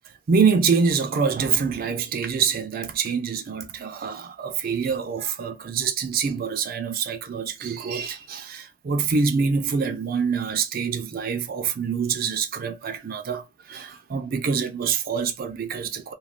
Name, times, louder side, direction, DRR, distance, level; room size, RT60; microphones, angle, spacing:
voice 1, 0.3-16.1, right 5 dB, 50° right, 0.4 m, -25 dB
2.3 x 2.3 x 3.5 m
head